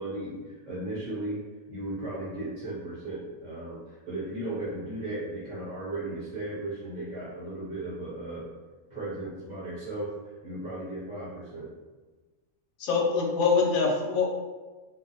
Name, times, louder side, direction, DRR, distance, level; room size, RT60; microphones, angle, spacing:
voice 1, 0.0-1.4 1.7-8.5 8.9-11.7, right 2 dB, 40° right, -10 dB, 0.8 m, -36 dB
voice 2, 12.8-14.3, left 4 dB, 90° left, -1 dB, 1.0 m, -24 dB
2.5 x 2.0 x 2.6 m, 1.2 s
omnidirectional pair, 1.4 m